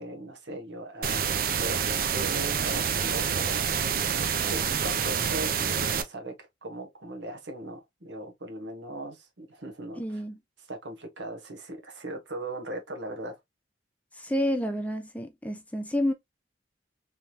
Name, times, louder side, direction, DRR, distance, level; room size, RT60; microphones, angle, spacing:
voice 1, 0.0-3.6 4.4-6.3 6.6-10.2 10.7-13.3, right 1 dB, 80° right, 1.2 m, -39 dB
sound 1, 1.0-6.0, right 7 dB, 50° right, 0.5 m, -27 dB
voice 2, 10.0-10.4 14.1-16.1, left 1 dB, 10° left, 0.5 m, -29 dB
3.4 x 3.1 x 2.7 m
head